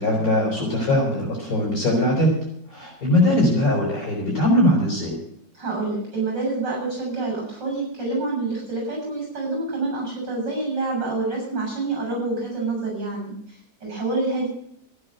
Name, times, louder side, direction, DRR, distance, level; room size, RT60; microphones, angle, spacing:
voice 1, 0.0-2.3 2.7-5.2, left 1 dB, 50° left, -2 dB, 5.7 m, -20 dB
voice 2, 5.5-14.5, right 3 dB, 70° right, -1 dB, 8.4 m, -27 dB
14.5 x 9.9 x 6.9 m, 0.70 s
omnidirectional pair, 1.9 m